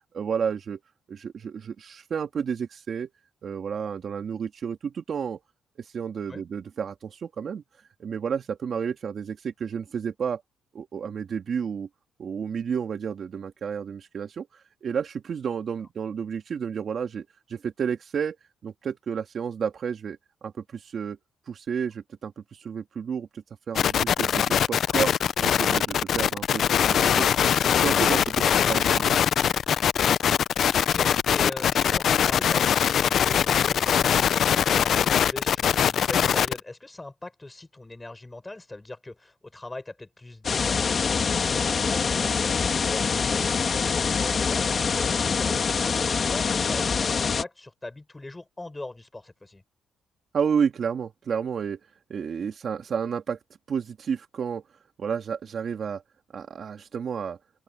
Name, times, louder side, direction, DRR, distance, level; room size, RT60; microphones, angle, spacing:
voice 1, 0.1-0.8 1.1-3.1 3.4-5.4 5.8-7.6 8.0-10.4 10.7-11.9 12.2-14.5 14.8-18.4 18.6-21.2 21.5-25.1 25.4-29.2 50.3-51.8 52.1-53.4 53.7-54.6 55.0-56.0 56.3-57.4, right 7 dB, 50° right, 2.2 m, -31 dB
sound 1, 23.8-36.6, left 9 dB, 60° left, 0.6 m, -22 dB
voice 2, 30.7-49.6, left 2 dB, 15° left, 7.6 m, -41 dB
sound 2, 40.4-47.4, left 5 dB, 40° left, 2.2 m, -25 dB
open air
cardioid pair, 90°, 0 cm